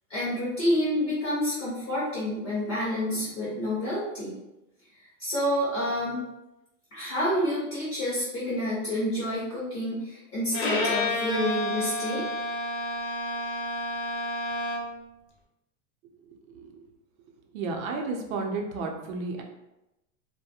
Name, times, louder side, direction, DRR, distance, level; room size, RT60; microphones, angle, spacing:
voice 1, 0.1-4.3 5.2-6.2 6.9-12.2, equal, 15° left, -9 dB, 0.4 m, -28 dB
Bowed string instrument, 10.5-15.0, left 1 dB, 55° left, 0.6 m, -30 dB
voice 2, 16.3-16.7 17.5-19.4, right 3 dB, 80° right, 2 dB, 0.7 m, -32 dB
2.4 x 2.2 x 2.7 m, 0.94 s
supercardioid pair, 175°, 40 cm